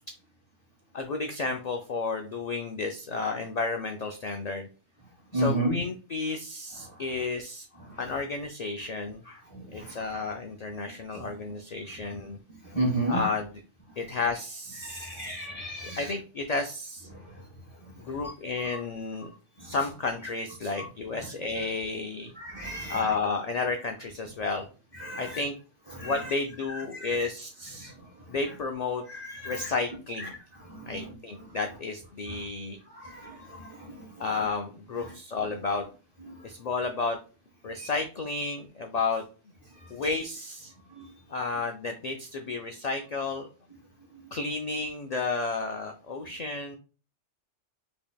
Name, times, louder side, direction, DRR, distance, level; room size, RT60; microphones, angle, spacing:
voice 1, 0.9-4.7 5.3-7.7 8.0-9.4 9.7-12.4 13.1-13.5 14.0-15.3 16.0-17.1 18.0-19.3 19.6-22.3 22.9-24.7 25.1-25.5 26.0-27.9 28.3-29.0 29.4-30.3 30.8-32.8 34.2-35.9 36.4-37.2 37.6-39.2 39.9-40.7 41.3-43.5 44.3-46.8, left 3 dB, 65° left, 4 dB, 0.4 m, -32 dB
voice 2, 5.3-5.8 6.8-7.0 7.8-8.0 9.5-10.0 11.2-11.3 12.5-13.2 14.8-16.1 17.1-17.4 17.8-18.3 19.6-19.7 20.7-20.9 21.1-21.3 22.3-23.1 24.9-25.4 25.9-26.3 26.7-27.3 27.8-28.4 29.1-29.7 30.2-30.3 30.6-31.1 31.5-31.6 32.3-32.4 32.9-34.3 35.0-35.1 36.2-36.5 37.8-37.9 39.7-39.9 40.9-41.1 44.1-44.3, right 1 dB, 30° left, -2 dB, 1.4 m, -35 dB
5.2 x 2.8 x 2.2 m, 0.35 s
omnidirectional pair, 1.2 m